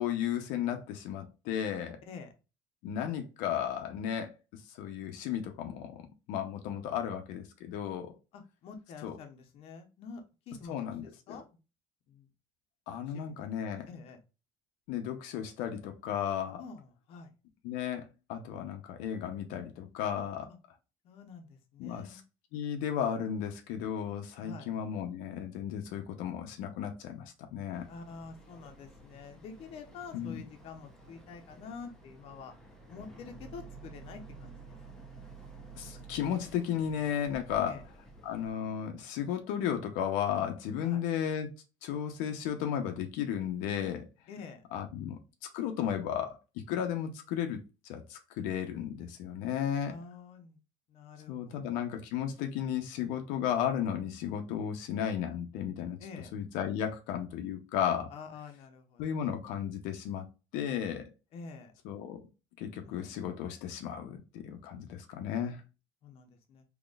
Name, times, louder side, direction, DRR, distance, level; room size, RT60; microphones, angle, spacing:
voice 1, 0.0-2.0 2.8-8.1 9.0-9.1 10.7-11.4 12.9-13.9 14.9-16.6 17.6-20.5 21.8-22.0 22.5-27.9 30.1-30.4 35.8-37.8 38.2-41.5 41.8-44.1 44.7-45.2 45.5-47.6 47.8-49.9 51.3-56.0 56.3-58.1 59.0-60.3 60.5-61.1 61.8-62.2 62.6-65.6, left 9 dB, 90° left, 0.6 m, -34 dB
voice 2, 8.3-11.6 12.1-12.3 13.1-13.4 13.9-14.2 16.6-17.3 21.0-22.2 24.4-24.7 27.9-32.5 32.9-34.8 37.6-37.8 40.8-41.0 44.3-44.6 49.9-50.6 50.9-51.8 56.0-56.3 58.1-59.2 61.3-61.7 62.8-63.5 66.0-66.6, left 5 dB, 50° left, 0.8 m, -48 dB
Boat Water vehicle, 27.7-38.5, right 3 dB, 5° left, 0.7 m, -51 dB
3.9 x 2.9 x 2.3 m
cardioid pair, 165°, 13 cm